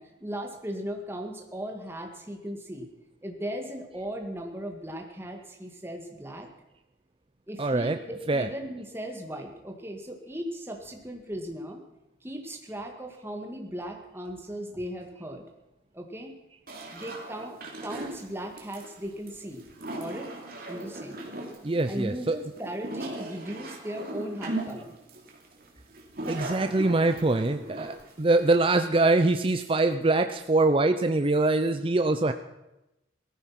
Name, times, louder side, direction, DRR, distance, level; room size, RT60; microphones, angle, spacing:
voice 1, 0.0-2.9 3.2-6.5 7.5-11.8 12.2-15.5 15.9-16.3 16.9-17.6 17.8-19.6 20.0-20.3 20.7-21.2 21.9-24.9, equal, 10° right, 3 dB, 2.0 m, -37 dB
voice 2, 7.6-8.0 8.3-8.5 21.6-22.4 26.3-32.3, right 2 dB, 30° right, 8 dB, 0.5 m, -24 dB
sound 1, 16.7-28.8, right 1 dB, 50° right, 2.9 m, -38 dB
17.5 x 14.0 x 5.9 m, 0.94 s
head